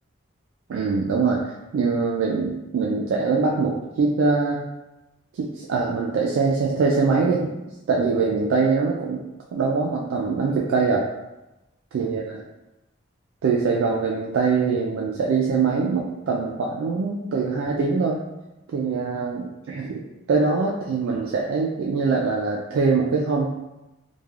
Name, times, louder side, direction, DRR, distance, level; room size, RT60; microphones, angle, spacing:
voice 1, 0.7-1.4 1.7-4.6 5.4-7.5 7.9-9.2 9.5-11.0 11.9-12.4 13.4-18.2 18.7-20.0 20.3-23.5, right 4 dB, 75° right, -3 dB, 0.3 m, -23 dB
3.2 x 2.2 x 2.3 m, 1.0 s
head